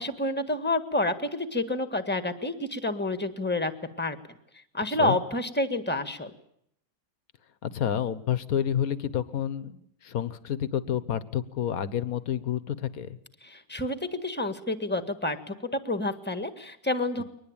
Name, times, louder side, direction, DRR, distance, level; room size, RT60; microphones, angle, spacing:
voice 1, 0.0-3.7 4.0-4.2 4.7-6.3 13.4-17.2, left 2 dB, 5° left, 9 dB, 1.5 m, -29 dB
voice 2, 7.6-13.2 17.2-17.3, left 9 dB, 55° left, 15 dB, 1.4 m, -29 dB
23.0 x 19.5 x 8.9 m, 0.72 s
omnidirectional pair, 2.1 m